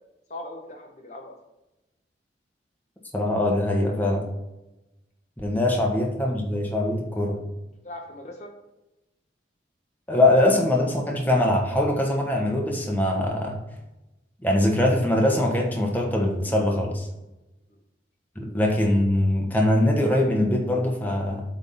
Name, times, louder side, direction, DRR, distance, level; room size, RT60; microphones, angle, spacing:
voice 1, 0.3-1.4 5.8-5.9 6.2-6.3 7.8-8.5 17.7-17.8, left 1 dB, 35° left, 1 dB, 0.9 m, -40 dB
voice 2, 3.1-4.3 5.4-7.4 10.1-13.6 14.4-17.1 18.4-21.4, left 1 dB, 10° left, 0 dB, 1.1 m, -22 dB
8.1 x 3.6 x 5.5 m, 0.96 s
head